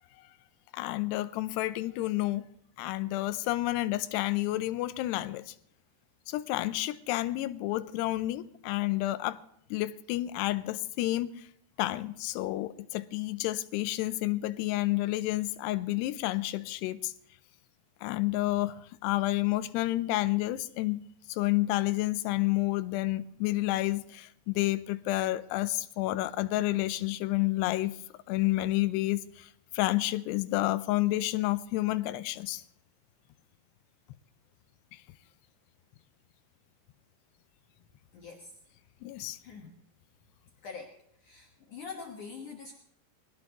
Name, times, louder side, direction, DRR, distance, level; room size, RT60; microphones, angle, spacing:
voice 1, 0.7-2.5 2.8-5.5 6.3-9.4 9.7-11.5 11.8-17.1 18.0-21.0 21.3-28.0 28.3-29.5 29.7-32.6 39.0-39.4, left 17 dB, 80° left, 2.7 m, -30 dB
voice 2, 38.1-38.5 39.4-39.7 40.6-40.9 41.2-42.7, left 5 dB, 60° left, 2.4 m, -44 dB
22.5 x 18.0 x 3.0 m
omnidirectional pair, 5.1 m